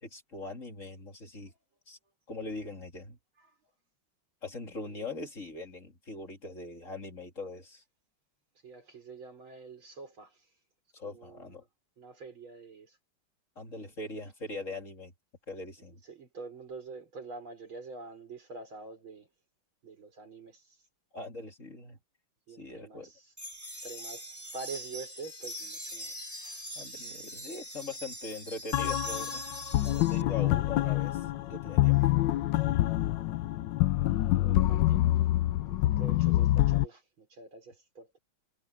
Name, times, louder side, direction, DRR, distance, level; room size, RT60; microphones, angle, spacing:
voice 1, 0.0-1.5 1.9-2.0 2.3-3.2 4.4-7.8 10.9-11.6 13.6-15.1 15.5-16.0 21.1-22.0 22.5-23.1 26.8-29.4 29.8-31.2 31.5-32.0, left 3 dB, 40° left, 2.9 m, -41 dB
voice 2, 8.6-10.3 11.0-11.6 12.0-13.0 16.1-19.3 19.8-20.6 22.5-23.2 23.8-26.1 26.4-26.6 34.1-35.1 35.4-38.2, right 3 dB, 80° right, 5.9 m, -46 dB
sound 1, 23.4-30.2, equal, 10° right, 4.9 m, -42 dB
sound 2, 28.7-36.9, left 15 dB, 75° left, 1.2 m, -26 dB
omnidirectional pair, 2.2 m